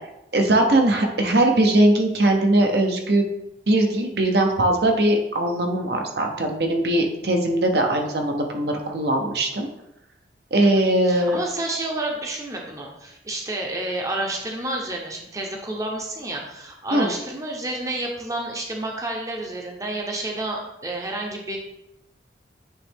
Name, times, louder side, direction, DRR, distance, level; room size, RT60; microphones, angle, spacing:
voice 1, 0.3-3.2 3.7-9.7 10.5-11.4 16.9-17.1, right 1 dB, 65° right, 2 dB, 0.9 m, -20 dB
voice 2, 10.6-21.6, right 2 dB, 20° right, 0 dB, 0.7 m, -30 dB
8.9 x 3.2 x 3.5 m, 0.87 s
head